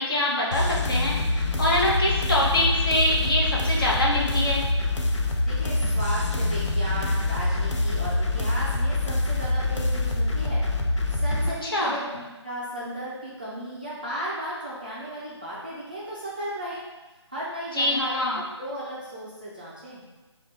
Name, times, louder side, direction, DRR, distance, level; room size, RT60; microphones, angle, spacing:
voice 1, 0.0-4.6 11.6-11.9 17.7-18.4, left 1 dB, 50° left, -5 dB, 1.1 m, -24 dB
sound 1, 0.5-11.5, left 2 dB, 75° left, 0.7 m, -25 dB
voice 2, 5.5-10.6 11.1-16.8 17.3-20.0, right 1 dB, 20° right, -10 dB, 0.4 m, -35 dB
5.2 x 2.3 x 3.3 m, 1.2 s
hypercardioid pair, 180°, 15 cm